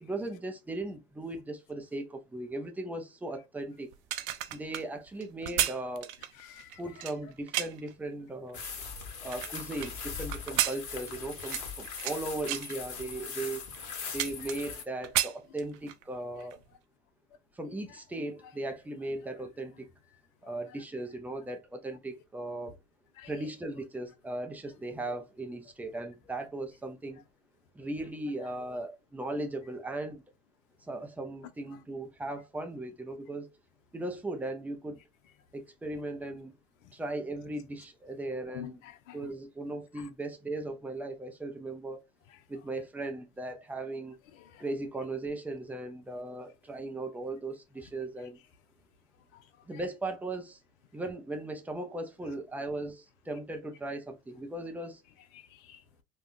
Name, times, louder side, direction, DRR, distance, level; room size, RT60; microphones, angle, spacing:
voice 1, 0.0-3.9 4.5-6.1 6.8-8.6 9.2-13.6 14.1-16.6 17.5-19.9 20.4-22.8 23.3-27.2 27.7-30.2 30.8-33.5 33.9-35.0 35.5-36.6 36.9-38.8 39.1-42.0 42.5-44.2 44.6-48.4 49.7-50.6 50.9-55.0, right 2 dB, 5° right, 0.3 m, -37 dB
sound 1, 3.9-7.9 8.5-9.9 10.3-12.2 12.5-12.8 13.4-13.5 13.7-14.8 15.0-16.0 16.4-16.6, right 13 dB, 55° right, 0.5 m, -33 dB
voice 2, 6.4-6.8 9.0-9.3 14.4-14.5 20.4-20.5 23.2-23.3 38.5-39.2 44.3-44.6 49.3-49.4 55.3-55.8, left 13 dB, 65° left, 0.7 m, -48 dB
sound 2, 8.5-14.8, left 6 dB, 40° left, 1.3 m, -40 dB
3.4 x 2.2 x 2.4 m
hypercardioid pair, 95°, 43 cm